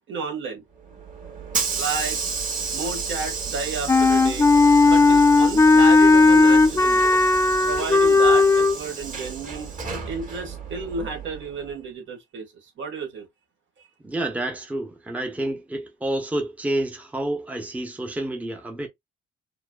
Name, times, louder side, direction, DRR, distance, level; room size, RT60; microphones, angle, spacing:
voice 1, 0.1-0.6 1.7-2.2 2.7-4.5 4.8-7.0 7.6-9.7 10.1-12.5 12.8-13.3, right 4 dB, 70° right, 1.7 m, -32 dB
Hiss / Sliding door, 0.8-11.7, right 5 dB, 40° right, 1.7 m, -32 dB
Wind instrument woodwind instrument, 3.9-8.8, left 3 dB, 15° left, 0.3 m, -16 dB
voice 2, 14.0-18.9, right 1 dB, 5° right, 0.8 m, -29 dB
4.7 x 2.1 x 2.3 m
cardioid pair, 90°, 20 cm